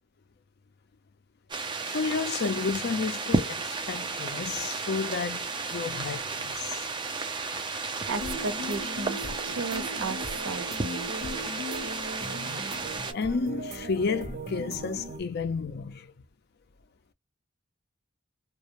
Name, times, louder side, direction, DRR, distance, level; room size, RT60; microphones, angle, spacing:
sound 1, 1.5-13.1, right 4 dB, 25° right, 0.4 m, -33 dB
voice 1, 1.8-6.7 12.6-12.9 13.1-16.1, left 5 dB, 55° left, 0.4 m, -31 dB
voice 2, 7.4-11.1, right 3 dB, 80° right, 0.6 m, -36 dB
sound 2, 8.1-15.2, equal, 55° right, 1.0 m, -38 dB
2.3 x 2.1 x 2.9 m
head